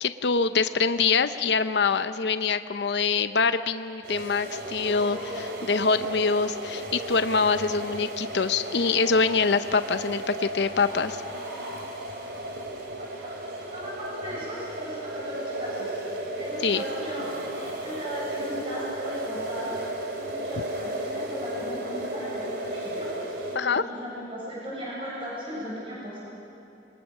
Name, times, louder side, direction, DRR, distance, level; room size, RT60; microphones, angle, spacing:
voice 1, 0.0-11.2 16.6-16.8 23.5-23.8, left 5 dB, 70° left, 11 dB, 0.7 m, -24 dB
sound 1, 4.0-23.6, right 1 dB, 65° right, 2.8 m, -34 dB
voice 2, 12.9-19.8 20.1-23.1 23.4-26.2, equal, 30° right, -6 dB, 7.3 m, -37 dB
27.0 x 22.0 x 6.5 m, 2.9 s
head